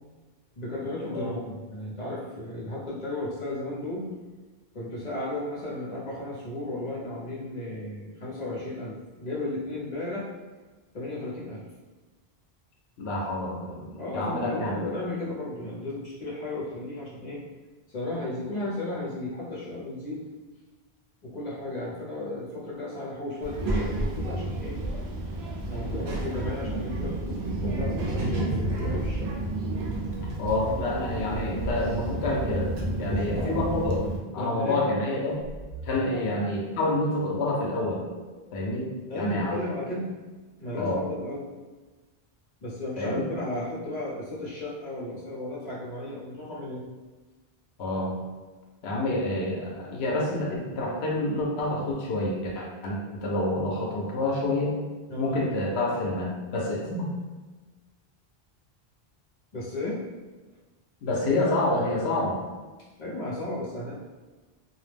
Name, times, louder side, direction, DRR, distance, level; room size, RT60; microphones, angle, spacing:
voice 1, 0.5-4.1 4.7-10.3 10.9-11.7 14.0-17.4 17.9-20.2 21.2-24.8 25.7-29.3 32.9-33.7 34.3-34.8 36.1-36.3 39.1-40.1 40.6-41.5 42.6-46.9 55.1-55.4 59.5-60.0 63.0-64.0, left 1 dB, 45° left, -6 dB, 0.8 m, -34 dB
voice 2, 13.0-14.7 30.4-32.7 33.0-35.4 35.8-38.0 38.5-39.6 40.7-41.0 43.0-43.1 47.8-48.1 48.8-54.8 55.2-57.1 61.0-62.4, left 2 dB, 90° left, -2 dB, 0.8 m, -28 dB
Child speech kid speaking, 23.4-34.2, right 1 dB, 90° right, 0.8 m, -30 dB
sound 1, 35.4-39.6, equal, 55° right, 1.1 m, -44 dB
2.3 x 2.0 x 3.2 m, 1.3 s
omnidirectional pair, 1.0 m